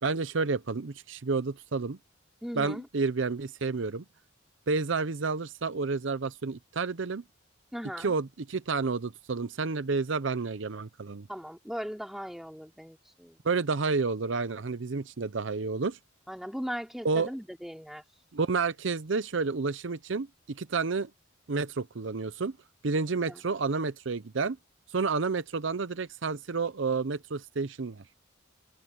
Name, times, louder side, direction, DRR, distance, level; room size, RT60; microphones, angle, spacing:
voice 1, 0.0-2.0 2.5-4.0 4.7-7.2 8.0-11.3 13.4-16.0 17.0-17.3 18.3-21.1 21.5-22.6 22.8-24.6 24.9-28.0, right 4 dB, 65° right, 0.7 m, -30 dB
voice 2, 2.4-2.9 7.7-8.1 11.3-13.4 16.3-18.0 23.3-23.4, equal, ahead, 2.8 m, -38 dB
head